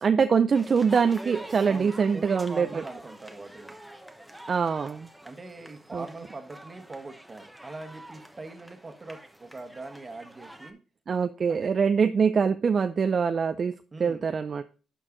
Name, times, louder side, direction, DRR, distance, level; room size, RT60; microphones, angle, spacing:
voice 1, 0.0-2.8 4.5-5.1 5.9-6.0 11.1-13.7 14.0-14.6, right 6 dB, 45° right, 10 dB, 0.5 m, -24 dB
sound 1, 0.5-10.7, right 1 dB, 5° right, 1.0 m, -46 dB
voice 2, 1.6-3.7 5.2-10.8 11.5-11.7 13.9-14.2, right 3 dB, 25° right, 6 dB, 1.4 m, -42 dB
12.0 x 4.6 x 3.8 m, 0.37 s
cardioid pair, 90°, 0 cm